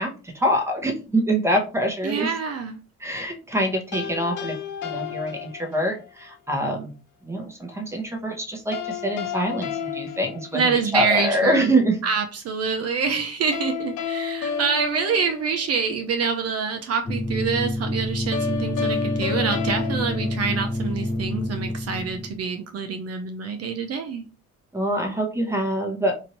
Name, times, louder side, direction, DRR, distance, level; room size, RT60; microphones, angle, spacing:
voice 1, 0.0-2.3 3.0-4.6 4.8-6.9 7.2-12.0 24.7-26.2, right 1 dB, 10° right, 2 dB, 0.9 m, -25 dB
voice 2, 2.0-2.8 10.5-11.7 12.0-24.2, right 5 dB, 55° right, 5 dB, 0.5 m, -26 dB
sound 1, 3.9-6.1 8.7-11.1 13.5-16.0 18.3-21.1, left 7 dB, 80° left, 0.7 m, -31 dB
sound 2, 17.1-22.4, left 1 dB, 15° left, 0.5 m, -28 dB
2.9 x 2.6 x 2.9 m, 0.33 s
cardioid pair, 90°, 30 cm